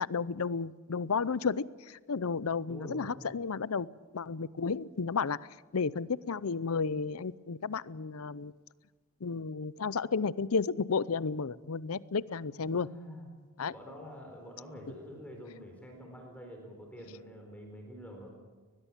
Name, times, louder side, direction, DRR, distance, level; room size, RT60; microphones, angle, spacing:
voice 1, 0.0-3.9 4.1-5.4 5.7-8.5 9.2-12.9 13.6-13.7, left 5 dB, 75° left, 20 dB, 0.6 m, -32 dB
voice 2, 2.6-3.1 12.6-13.3 13.7-18.3, equal, 5° left, 1 dB, 4.1 m, -46 dB
22.5 x 20.5 x 7.4 m, 1.4 s
head